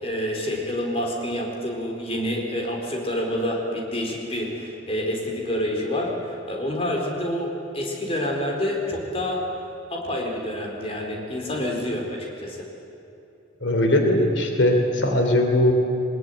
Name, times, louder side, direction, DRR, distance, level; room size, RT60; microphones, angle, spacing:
voice 1, 0.0-7.5 7.7-9.4 9.9-12.6, left 1 dB, 35° left, 0 dB, 4.2 m, -28 dB
voice 2, 13.6-15.7, left 1 dB, 90° left, 4 dB, 2.9 m, -20 dB
22.0 x 21.0 x 9.4 m, 2.9 s
head